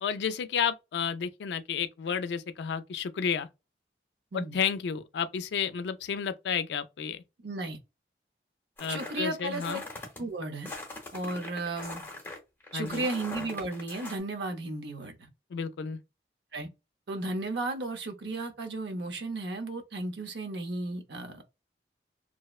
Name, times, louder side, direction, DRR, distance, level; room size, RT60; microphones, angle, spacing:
voice 1, 0.0-3.5 4.3-7.2 8.8-9.8 12.7-13.1 15.5-16.0, left 7 dB, 75° left, 0.3 m, -31 dB
voice 2, 7.4-7.8 8.9-9.8 10.2-10.7 11.1-12.0 12.7-15.3 16.5-16.7 17.1-21.4, right 2 dB, 75° right, 0.6 m, -34 dB
sound 1, 8.8-10.2 10.6-14.2, left 2 dB, 10° left, 0.7 m, -41 dB
2.7 x 2.0 x 2.3 m
head